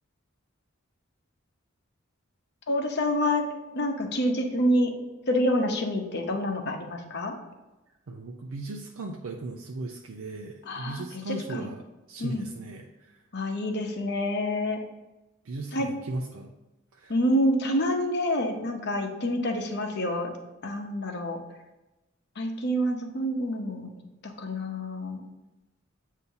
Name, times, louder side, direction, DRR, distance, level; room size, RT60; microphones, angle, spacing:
voice 1, 2.7-3.5 3.7-4.9 5.3-7.4 10.7-11.7 12.2-12.4 13.3-14.8 15.7-15.9 17.1-20.3 20.6-21.4 22.4-23.9 24.2-25.2, equal, 55° left, 3 dB, 0.9 m, -27 dB
voice 2, 8.1-13.2 15.4-16.5 16.9-17.2, right 2 dB, 80° right, 1 dB, 0.6 m, -37 dB
8.1 x 2.8 x 5.5 m, 1.0 s
head